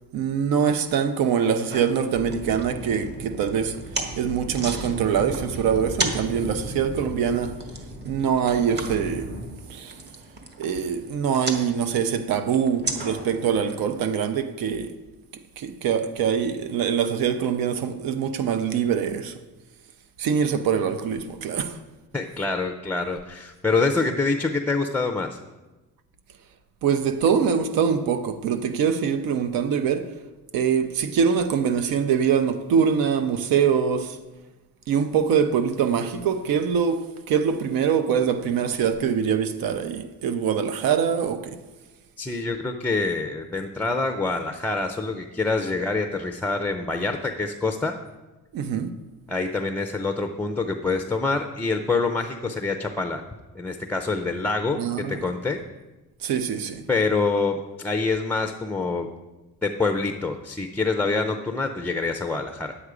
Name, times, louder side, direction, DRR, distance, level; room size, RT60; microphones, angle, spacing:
voice 1, 0.1-3.8 4.2-7.6 8.0-9.3 9.7-9.9 10.6-14.9 15.6-19.3 20.2-21.8 26.8-30.1 30.5-34.2 34.9-41.6 48.5-48.9 54.7-55.2 56.2-56.8, right 7 dB, 85° right, 0.8 m, -24 dB
sound 1, 1.7-13.7, right 2 dB, 30° right, 1.2 m, -36 dB
sound 2, 2.1-9.4, right 1 dB, 60° right, 3.3 m, -37 dB
voice 2, 22.1-25.4 42.2-48.0 49.3-53.2 53.6-54.8 55.1-55.6 56.9-59.1 59.6-62.8, left 3 dB, 5° left, 0.4 m, -26 dB
9.9 x 8.0 x 4.9 m
cardioid pair, 150°, 34 cm